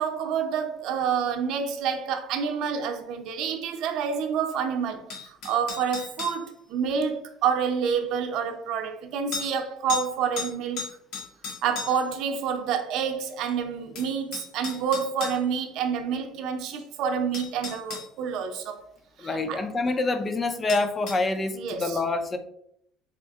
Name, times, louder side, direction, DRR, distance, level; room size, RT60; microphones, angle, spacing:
voice 1, 0.0-10.8 11.6-18.8 19.5-19.6 21.6-22.0, right 7 dB, 60° right, 0.7 m, -28 dB
sound 1, 5.1-6.4 7.9-8.0 9.3-9.5 9.9-10.1 10.4-12.1 13.5-13.6 14.0-15.4 16.8-16.9 17.3-18.1 20.7-21.2, left 5 dB, 70° left, 1.3 m, -35 dB
voice 2, 19.2-22.4, left 3 dB, 20° left, 0.5 m, -26 dB
4.3 x 2.6 x 3.5 m
cardioid pair, 140°, 0 cm